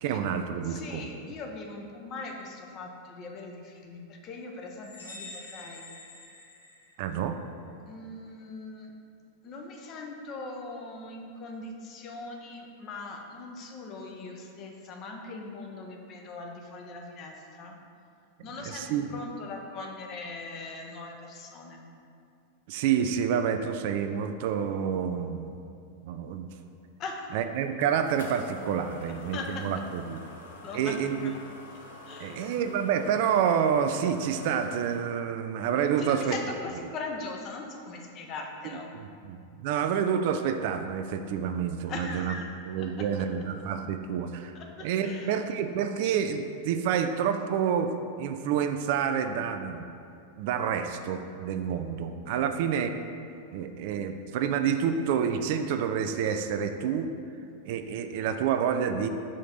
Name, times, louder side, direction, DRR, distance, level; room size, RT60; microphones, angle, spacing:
voice 1, 0.0-1.1 7.0-7.4 18.6-19.1 22.7-25.5 26.0-26.5 27.3-30.2 30.7-31.4 32.2-36.4 39.0-42.4 42.7-44.5 44.8-49.9 50.4-52.9 53.5-57.1 57.7-59.1, right 8 dB, 50° right, 7 dB, 0.3 m, -28 dB
voice 2, 0.6-5.8 7.8-8.9 9.4-17.8 18.4-21.8 27.0-27.3 29.3-29.7 30.6-31.0 31.2-31.4 32.1-32.5 36.0-38.9 41.9-42.5 42.8-43.1 44.5-45.4, left 3 dB, 35° left, 1 dB, 0.8 m, -40 dB
sound 1, 4.8-7.4, left 2 dB, 80° left, 1.4 m, -46 dB
sound 2, 27.0-35.0, left 2 dB, 60° left, 0.8 m, -48 dB
5.0 x 3.8 x 5.6 m, 2.4 s
figure-of-eight pair, 90°, 0 cm